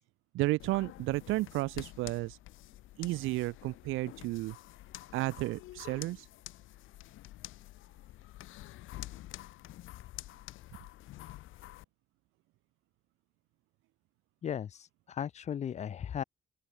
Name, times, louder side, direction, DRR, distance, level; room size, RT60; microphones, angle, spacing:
voice 1, 0.3-2.4 3.0-4.6 5.1-6.3, right 19 dB, 90° right, 0.5 m, -32 dB
sound 1, 0.6-11.8, left 16 dB, 90° left, 1.6 m, -48 dB
voice 2, 14.4-16.2, left 9 dB, 35° left, 0.4 m, -36 dB
open air
cardioid pair, 90°, 20 cm